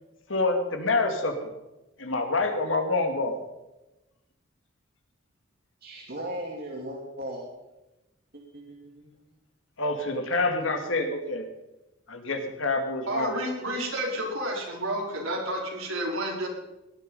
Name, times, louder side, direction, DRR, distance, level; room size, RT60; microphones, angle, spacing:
voice 1, 0.3-1.3 2.0-3.4 9.8-11.4 12.1-13.3, left 3 dB, 70° left, 5 dB, 2.4 m, -27 dB
voice 2, 5.8-7.5 8.3-9.1, right 1 dB, 50° right, -1 dB, 2.5 m, -37 dB
voice 3, 13.1-16.5, right 1 dB, 85° right, -1 dB, 4.7 m, -30 dB
18.5 x 11.0 x 5.6 m, 0.98 s
head